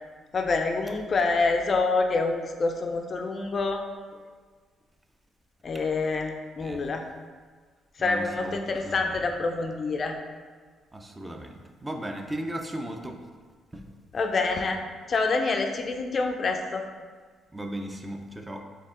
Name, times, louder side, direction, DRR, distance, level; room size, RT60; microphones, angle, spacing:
voice 1, 0.3-3.8 5.6-7.0 8.0-10.2 14.1-14.8 15.1-16.8, left 3 dB, 45° left, 4 dB, 0.4 m, -26 dB
voice 2, 6.6-6.9 8.0-9.1 10.9-13.2 13.7-13.8 17.5-18.6, right 1 dB, 15° right, 4 dB, 0.5 m, -36 dB
4.6 x 2.8 x 3.7 m, 1.6 s
cardioid pair, 90°, 0 cm